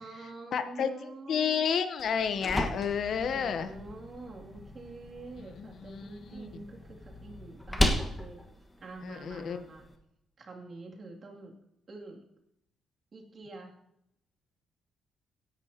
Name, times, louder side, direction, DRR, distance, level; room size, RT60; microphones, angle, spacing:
voice 1, 0.0-1.7 3.1-8.4 8.8-9.8 10.4-11.6 11.9-12.2 13.1-13.7, right 3 dB, 45° right, -1 dB, 2.5 m, -46 dB
voice 2, 0.5-3.7 5.6-6.4 9.0-9.6, left 7 dB, 60° left, 10 dB, 0.8 m, -31 dB
sound 1, 2.0-10.0, left 1 dB, 15° left, 1.4 m, -35 dB
16.5 x 11.0 x 2.8 m, 0.79 s
cardioid pair, 90°, 0 cm